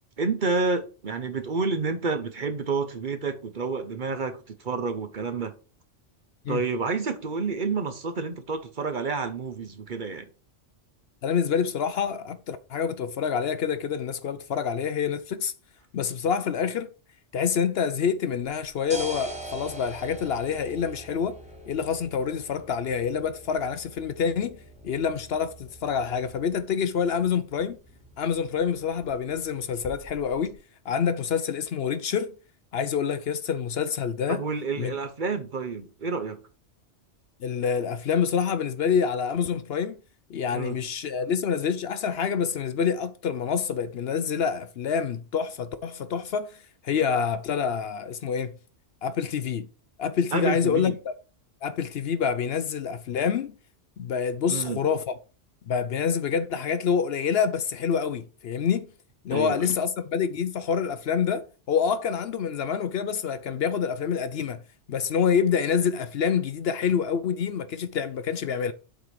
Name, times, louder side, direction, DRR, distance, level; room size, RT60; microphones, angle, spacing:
voice 1, 0.2-5.6 6.5-10.3 34.3-36.4 40.5-40.8 50.3-51.0 54.5-54.8 59.3-59.7, right 4 dB, 45° right, 0.9 m, -29 dB
voice 2, 11.2-15.5 15.9-16.9 17.3-21.4 21.7-27.8 28.2-30.6 30.8-32.3 32.7-34.4 34.8-34.9 37.4-40.0 40.3-48.5 49.0-49.7 50.0-51.1 51.6-53.5 54.0-55.1 55.7-58.9 59.2-64.6 64.9-68.7, left 7 dB, 65° left, 0.8 m, -27 dB
sound 1, 18.4-30.5, right 1 dB, 5° right, 1.4 m, -44 dB
7.6 x 4.2 x 4.7 m
omnidirectional pair, 1.2 m